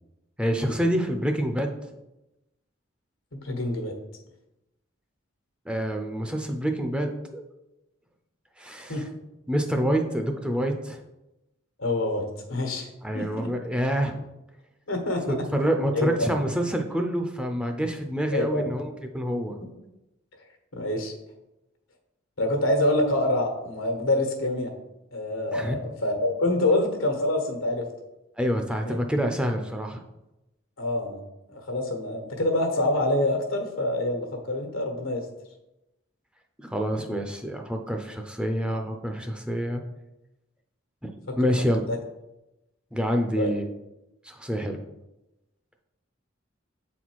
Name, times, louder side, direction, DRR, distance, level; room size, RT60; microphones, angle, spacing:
voice 1, 0.4-1.7 5.7-7.4 8.6-9.0 9.5-11.0 13.0-14.2 15.3-19.6 25.5-25.7 28.4-30.0 36.6-39.8 41.0-41.1 41.4-41.8 42.9-43.6 44.2-44.8, equal, 5° right, 4 dB, 0.5 m, -27 dB
voice 2, 3.3-3.9 8.9-9.0 11.8-12.9 13.1-13.5 14.9-15.4 15.9-16.2 18.3-18.7 20.7-21.1 22.4-24.7 25.1-27.9 28.8-29.0 30.8-31.2 31.5-35.3 41.3-41.5 41.9-42.0 43.4-43.5, left 1 dB, 90° left, 4 dB, 1.3 m, -26 dB
7.8 x 4.2 x 4.6 m, 0.95 s
head